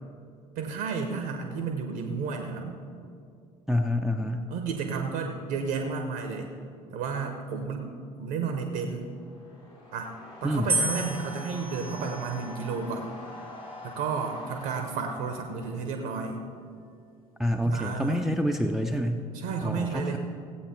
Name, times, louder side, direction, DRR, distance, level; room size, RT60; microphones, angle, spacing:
voice 1, 0.6-2.8 4.5-6.5 6.9-7.9 8.2-9.1 9.9-10.1 10.4-13.1 13.8-16.4 17.6-18.3 19.3-20.2, right 5 dB, 60° right, 5 dB, 0.9 m, -32 dB
voice 2, 3.7-4.5 10.4-10.8 17.4-19.3 19.6-20.2, equal, ahead, 3 dB, 0.6 m, -27 dB
sound 1, 8.9-15.9, left 1 dB, 70° left, 3.6 m, -45 dB
sound 2, 10.7-12.9 13.7-14.2, right 2 dB, 85° right, 0.9 m, -33 dB
16.5 x 8.4 x 4.4 m, 2.4 s
figure-of-eight pair, 55°, 18 cm